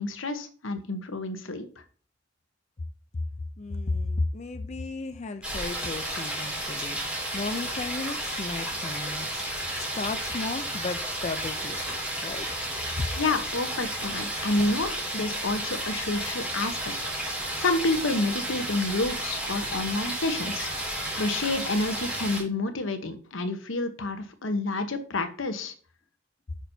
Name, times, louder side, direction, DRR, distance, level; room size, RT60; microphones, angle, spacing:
voice 1, 0.0-1.7 13.2-16.9 17.3-20.7 21.2-25.7, left 2 dB, 90° left, 1.0 m, -29 dB
voice 2, 3.6-9.4 9.9-12.5 13.0-13.1, left 3 dB, 35° left, 0.5 m, -34 dB
sound 1, 5.4-22.4, right 1 dB, 5° right, 3.4 m, -32 dB
8.8 x 6.1 x 2.7 m
head